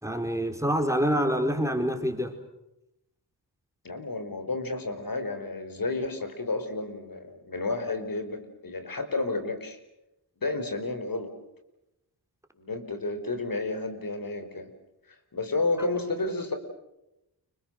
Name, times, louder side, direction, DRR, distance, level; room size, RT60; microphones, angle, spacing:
voice 1, 0.0-2.3, equal, 5° right, 5 dB, 4.4 m, -26 dB
voice 2, 3.8-9.8 10.4-11.3 12.6-14.7 15.3-16.6, left 3 dB, 50° left, 8 dB, 4.9 m, -31 dB
29.5 x 25.5 x 6.5 m, 0.88 s
cardioid pair, 55°, 42 cm